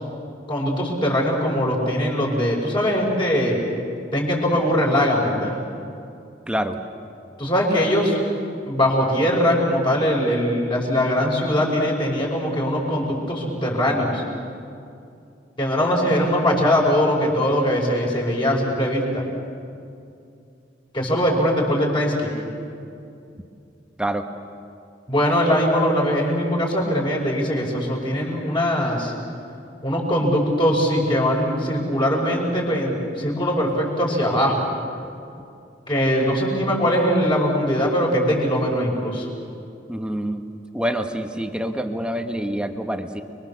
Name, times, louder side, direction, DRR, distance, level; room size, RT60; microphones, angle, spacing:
voice 1, 0.5-3.6 4.1-5.6 7.4-8.2 8.7-14.2 15.6-19.2 20.9-22.3 25.1-29.1 29.8-34.7 35.9-39.3, equal, 25° left, -2 dB, 5.6 m, -21 dB
voice 2, 6.5-6.8 24.0-24.2 39.9-40.4 40.7-43.2, right 1 dB, 5° right, 6 dB, 1.3 m, -26 dB
30.0 x 22.5 x 7.1 m, 2.5 s
head